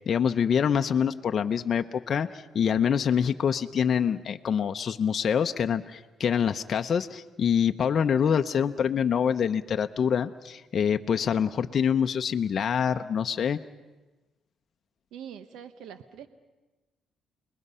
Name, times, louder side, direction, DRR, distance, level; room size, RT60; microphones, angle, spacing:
voice 1, 0.0-13.6, left 7 dB, 55° left, 7 dB, 0.7 m, -25 dB
voice 2, 15.1-16.3, right 8 dB, 85° right, 10 dB, 1.0 m, -43 dB
28.5 x 20.5 x 5.6 m, 1.1 s
cardioid pair, 90°, 0 cm